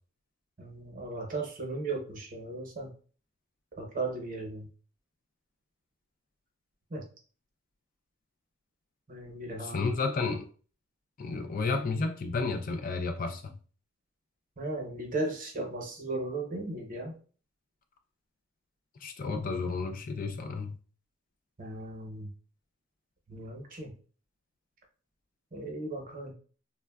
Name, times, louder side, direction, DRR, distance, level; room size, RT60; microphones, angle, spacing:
voice 1, 0.6-2.9 3.8-4.7 6.9-7.0 9.1-9.9 14.6-17.2 21.6-22.3 23.3-23.9 25.5-26.3, right 2 dB, 40° right, 1 dB, 0.8 m, -36 dB
voice 2, 9.6-10.5 11.2-13.5 19.0-20.8, left 4 dB, 40° left, 6 dB, 0.3 m, -32 dB
3.5 x 2.1 x 2.3 m, 0.40 s
head